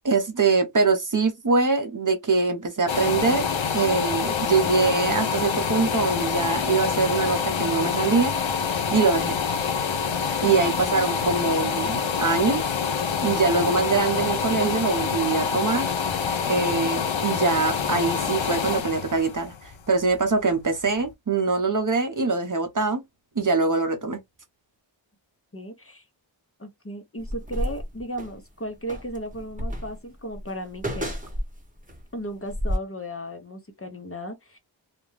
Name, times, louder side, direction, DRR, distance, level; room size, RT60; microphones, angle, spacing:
voice 1, 0.0-3.5 3.7-8.3 8.9-9.4 10.4-12.6 13.2-15.9 16.5-23.0 23.4-24.2, right 4 dB, 40° right, 0.7 m, -23 dB
sound 1, 2.9-20.6 21.0-21.1, left 6 dB, 75° left, 0.6 m, -26 dB
voice 2, 25.5-26.0 26.6-31.1 32.1-34.6, equal, 30° left, 0.8 m, -35 dB
sound 2, 27.2-28.4 28.9-32.0 32.5-32.8, equal, 15° right, 0.9 m, -31 dB
2.4 x 2.2 x 3.1 m
wide cardioid pair, 50°, 46 cm